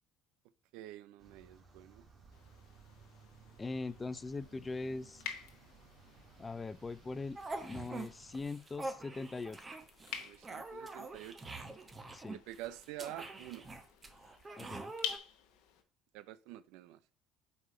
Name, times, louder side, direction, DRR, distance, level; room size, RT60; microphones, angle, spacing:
voice 1, 0.7-2.0 10.1-11.4 12.3-13.7 16.1-17.0, right 14 dB, 75° right, 0.4 m, -47 dB
sound 1, 1.2-8.5, right 4 dB, 45° right, 1.9 m, -60 dB
sound 2, 2.3-15.8, left 8 dB, 70° left, 1.0 m, -49 dB
voice 2, 3.6-5.2 6.4-9.7 12.1-12.4 14.6-14.9, left 3 dB, 25° left, 0.3 m, -41 dB
sound 3, 7.4-8.1 8.3-15.2, right 2 dB, 25° right, 1.0 m, -45 dB
4.6 x 4.2 x 5.3 m
hypercardioid pair, 70°, 0 cm